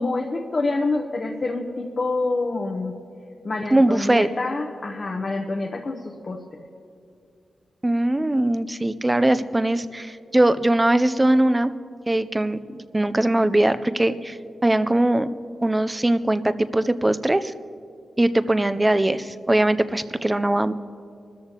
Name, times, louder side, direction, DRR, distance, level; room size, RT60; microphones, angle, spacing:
voice 1, 0.0-2.9 3.4-6.4, left 3 dB, 40° left, 2 dB, 0.9 m, -27 dB
voice 2, 3.7-4.3 7.8-11.7 12.1-15.3 15.6-17.5 18.2-20.7, right 1 dB, 15° right, 12 dB, 0.5 m, -21 dB
25.5 x 13.5 x 2.9 m, 2.5 s
wide cardioid pair, 115°, 0 cm